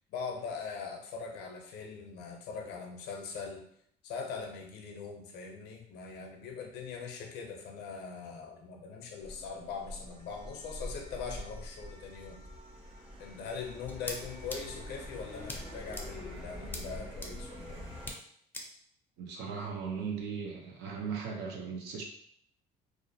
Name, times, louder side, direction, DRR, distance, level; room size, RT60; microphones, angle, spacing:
voice 1, 0.1-3.7 4.0-12.4 13.2-17.9, left 5 dB, 80° left, 2 dB, 0.6 m, -41 dB
sound 1, 9.2-18.1, left 1 dB, 35° right, 1.0 m, -45 dB
sound 2, 13.9-14.2 14.5-14.6 15.4-15.6 15.9-16.0 16.7-16.8 17.2-17.3 18.1-18.2 18.5-18.6, left 2 dB, 10° left, 0.4 m, -39 dB
voice 2, 19.2-22.0, right 6 dB, 85° right, 0 dB, 0.6 m, -38 dB
2.5 x 2.0 x 2.6 m, 0.68 s
cardioid pair, 110°, 17 cm